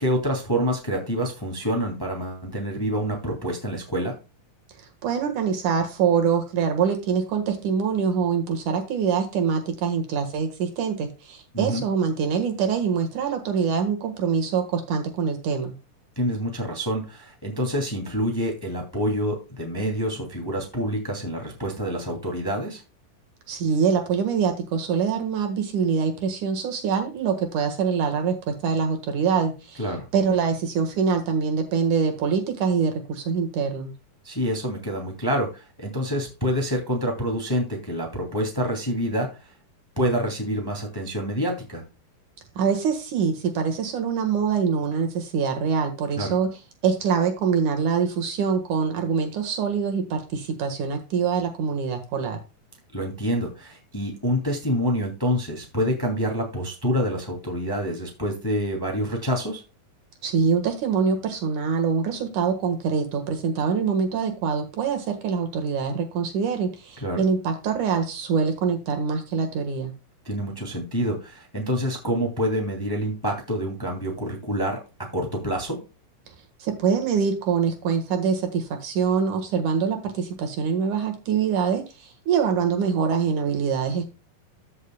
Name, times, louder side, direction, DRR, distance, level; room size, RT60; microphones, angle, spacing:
voice 1, 0.0-4.1 11.5-11.9 16.2-22.8 29.8-30.1 34.2-39.5 40.0-41.8 46.2-46.3 52.9-59.6 67.0-67.2 70.2-75.8, equal, 10° left, 1 dB, 2.1 m, -27 dB
voice 2, 5.0-15.7 23.5-29.8 30.1-33.9 42.6-46.5 46.8-52.4 60.2-69.9 76.6-84.0, right 6 dB, 65° right, 5 dB, 3.0 m, -24 dB
14.0 x 6.5 x 2.3 m, 0.29 s
omnidirectional pair, 4.0 m